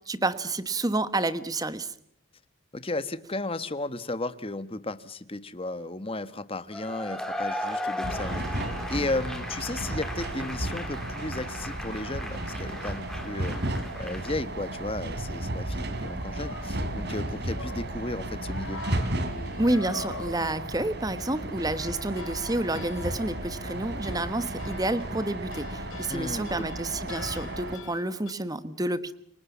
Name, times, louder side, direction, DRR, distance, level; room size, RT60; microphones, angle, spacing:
voice 1, 0.1-1.9 19.6-29.1, right 2 dB, 15° right, 13 dB, 1.2 m, -29 dB
voice 2, 2.7-13.7 14.0-18.8 26.1-26.7, left 2 dB, 25° left, 13 dB, 1.2 m, -34 dB
Cheering / Applause / Crowd, 6.7-14.4, left 1 dB, ahead, 3.0 m, -37 dB
sound 1, 8.0-27.8, right 1 dB, 50° right, 3.3 m, -34 dB
sound 2, 15.2-15.4 15.9-18.0 18.4-28.3, left 3 dB, 75° left, 4.8 m, -44 dB
29.0 x 24.0 x 7.2 m, 0.65 s
head